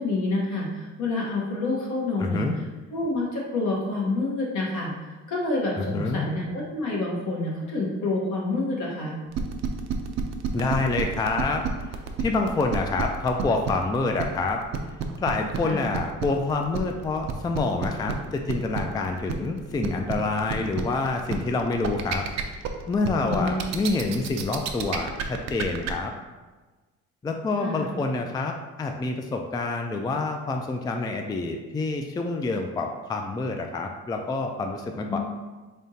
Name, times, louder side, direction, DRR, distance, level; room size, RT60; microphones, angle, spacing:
voice 1, 0.0-2.5 2.9-4.9 5.3-9.2 15.6-15.8 23.2-23.6 23.9-24.0 27.6-28.0 35.1-35.2, left 2 dB, 70° left, -3 dB, 1.2 m, -28 dB
voice 2, 2.2-2.6 5.8-6.3 10.5-11.6 12.2-14.6 15.2-22.2 22.9-26.1 27.2-35.2, left 3 dB, 15° left, 3 dB, 0.3 m, -27 dB
sound 1, 9.3-25.9, right 8 dB, 60° right, 0.5 m, -30 dB
3.8 x 3.5 x 2.7 m, 1.3 s
cardioid pair, 90°, 30 cm